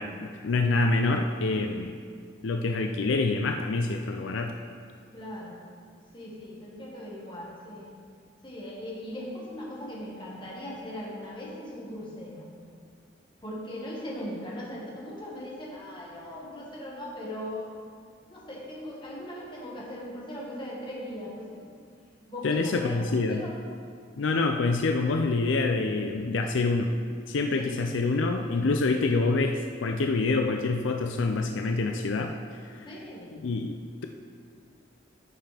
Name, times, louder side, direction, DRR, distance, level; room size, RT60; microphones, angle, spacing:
voice 1, 0.0-1.9 2.4-4.6 22.4-23.5 24.2-26.9 27.3-32.3 32.7-32.9 33.4-34.0, left 3 dB, 75° left, 4 dB, 0.5 m, -26 dB
voice 2, 5.1-5.6 6.1-7.9 8.4-12.5 13.4-17.9 18.3-21.7 22.3-23.6 27.6-27.8 28.4-28.6 32.8-33.5, left 1 dB, 25° left, -5 dB, 1.6 m, -39 dB
13.5 x 5.8 x 3.4 m, 2.1 s
head